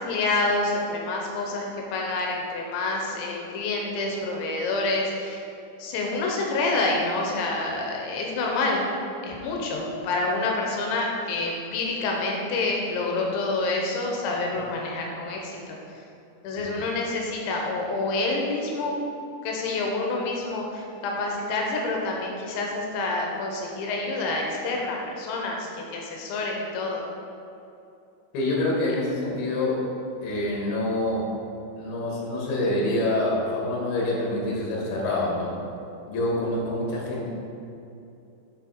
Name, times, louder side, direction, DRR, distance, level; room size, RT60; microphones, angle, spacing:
voice 1, 0.0-1.7 1.9-5.4 5.8-8.8 9.2-15.8 16.4-19.0 19.4-27.0, left 2 dB, 80° left, 0 dB, 3.1 m, -27 dB
voice 2, 28.3-29.8 30.2-31.3 31.8-35.5 36.1-37.3, left 1 dB, 65° left, -3 dB, 3.2 m, -26 dB
7.4 x 5.8 x 4.6 m, 2.7 s
omnidirectional pair, 5.4 m